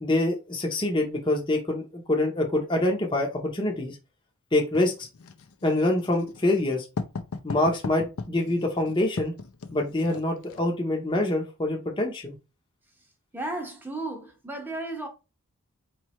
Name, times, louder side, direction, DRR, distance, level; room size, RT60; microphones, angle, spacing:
voice 1, 0.0-4.0 4.5-5.1 5.6-6.9 7.4-9.3 9.7-12.4, left 1 dB, 20° left, 0.7 m, -25 dB
Writing, 4.7-10.7, left 4 dB, 80° left, 0.6 m, -37 dB
voice 2, 13.3-15.1, right 2 dB, 10° right, 0.8 m, -34 dB
4.5 x 3.1 x 3.0 m
head